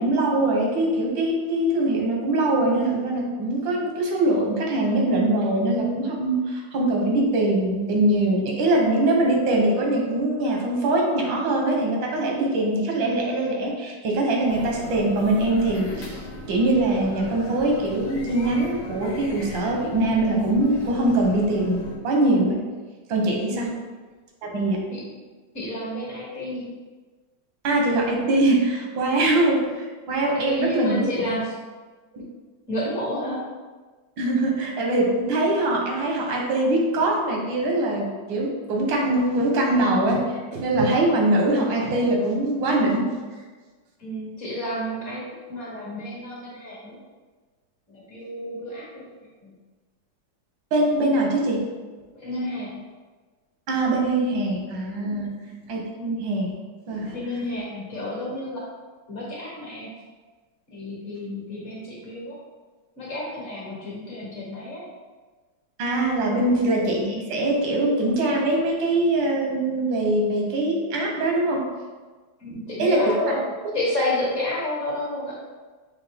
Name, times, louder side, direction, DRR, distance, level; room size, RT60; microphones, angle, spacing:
voice 1, 0.0-16.2 16.5-22.6 23.1-23.7 24.4-24.8 27.6-31.1 34.2-43.1 50.7-51.7 53.7-55.3 55.7-56.5 56.9-57.2 65.8-71.6 72.5-73.4, right 2 dB, 85° right, 0 dB, 1.6 m, -22 dB
sound 1, 14.5-22.0, left 2 dB, 65° left, 1.3 m, -38 dB
voice 2, 25.5-26.7 30.3-31.5 32.7-33.5 44.0-45.2 45.5-47.0 47.9-49.0 49.4-49.5 52.1-52.8 55.1-55.2 57.1-58.6 59.1-59.9 60.7-62.4 63.0-64.9 66.3-66.5 72.4-73.4 73.7-75.4, left 1 dB, 50° left, -4 dB, 1.2 m, -30 dB
5.7 x 2.5 x 3.4 m, 1.4 s
omnidirectional pair, 2.0 m